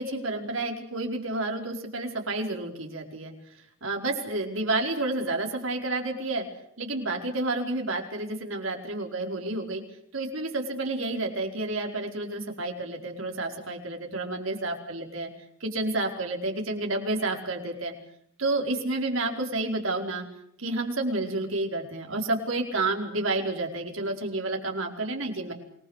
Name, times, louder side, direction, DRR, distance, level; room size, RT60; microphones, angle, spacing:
voice 1, 0.0-3.3 3.8-6.4 6.8-9.8 10.1-15.3 15.6-17.9 18.4-20.2 20.6-25.5, right 2 dB, 80° right, 2 dB, 4.9 m, -30 dB
28.0 x 21.0 x 6.6 m, 0.71 s
head